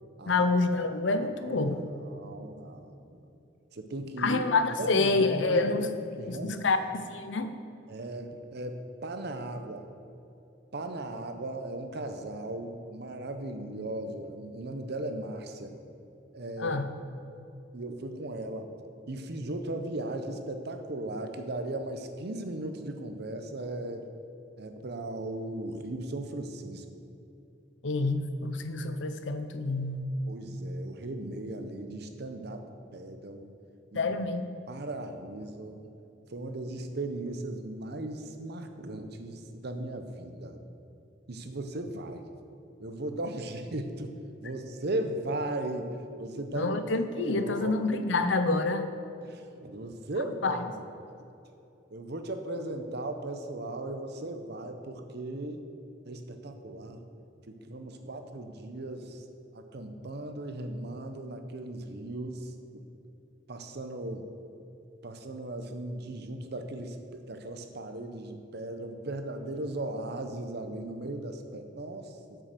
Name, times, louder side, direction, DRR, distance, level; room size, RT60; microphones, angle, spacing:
voice 1, 0.3-1.8 4.2-5.9 6.3-7.5 16.6-16.8 27.8-30.1 33.9-34.4 46.5-48.9 50.4-50.6, left 3 dB, 75° left, 9 dB, 0.7 m, -27 dB
voice 2, 1.2-1.6 1.9-3.2 3.7-4.4 4.8-5.7 6.2-6.7 7.9-9.9 10.7-15.8 16.3-16.8 17.7-18.7 19.1-24.0 24.6-26.9 30.3-32.6 32.9-33.4 33.9-34.1 34.7-35.9 36.3-40.6 41.3-42.3 42.8-44.1 44.4-45.9 46.2-46.8 47.1-47.7 49.2-50.8 51.9-55.6 56.0-57.0 57.5-59.2 59.5-62.5 63.5-64.3 65.0-72.4, right 1 dB, 60° right, 7 dB, 0.8 m, -37 dB
8.5 x 6.2 x 6.8 m, 2.8 s
head